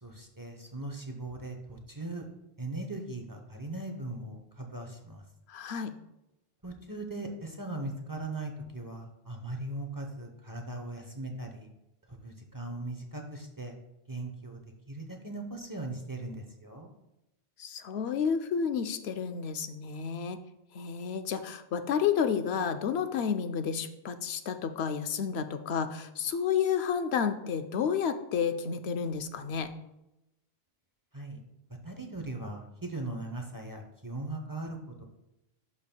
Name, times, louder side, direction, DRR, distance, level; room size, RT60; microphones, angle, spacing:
voice 1, 0.0-2.2 2.6-5.2 6.6-11.7 12.1-13.8 14.1-14.6 14.9-16.9 31.1-31.4 31.8-35.0, right 2 dB, 20° right, 3 dB, 0.7 m, -39 dB
voice 2, 5.5-5.9 17.6-20.4 20.7-29.7, left 7 dB, 85° left, 9 dB, 0.9 m, -31 dB
11.0 x 5.3 x 2.2 m, 0.90 s
omnidirectional pair, 1.0 m